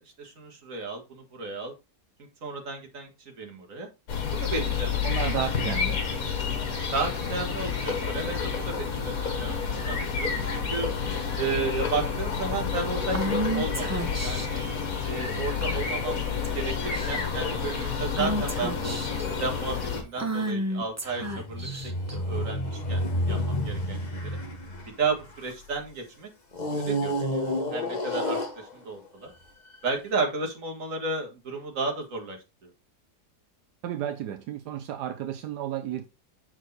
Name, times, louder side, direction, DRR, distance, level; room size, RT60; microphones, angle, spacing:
voice 1, 0.2-1.7 2.4-3.9 4.4-5.7 6.9-10.9 11.4-14.6 15.0-16.2 16.5-19.0 19.4-21.8 22.1-24.3 25.0-26.3 26.7-29.3 29.8-32.7, right 4 dB, 50° right, 1.9 m, -33 dB
sound 1, 4.1-20.0, left 6 dB, 60° left, 1.7 m, -29 dB
voice 2, 5.0-6.0 33.8-36.1, right 10 dB, 80° right, 1.2 m, -32 dB
Female speech woman speaking / Whispering, 13.1-14.6 15.6-16.0 16.4-16.6 16.9-17.4 18.2-19.3 20.2-22.1, right 1 dB, 20° right, 0.4 m, -31 dB
sound 2, 21.1-25.8 26.5-29.1 29.7-29.9, equal, 30° left, 1.2 m, -30 dB
6.4 x 4.5 x 3.9 m
omnidirectional pair, 1.8 m